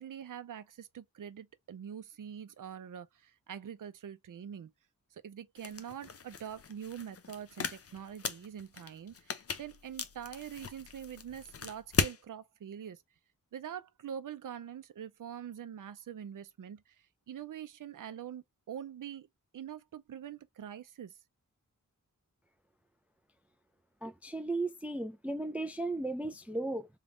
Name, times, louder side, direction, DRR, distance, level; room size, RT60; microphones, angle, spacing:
voice 1, 0.0-4.7 5.1-13.0 13.5-19.3 19.5-21.2, right 9 dB, 75° right, 0.6 m, -44 dB
sound 1, 5.6-12.2, left 6 dB, 45° left, 0.6 m, -38 dB
voice 2, 24.0-26.9, right 2 dB, 5° right, 0.4 m, -35 dB
3.5 x 2.4 x 3.7 m
wide cardioid pair, 100°, 33 cm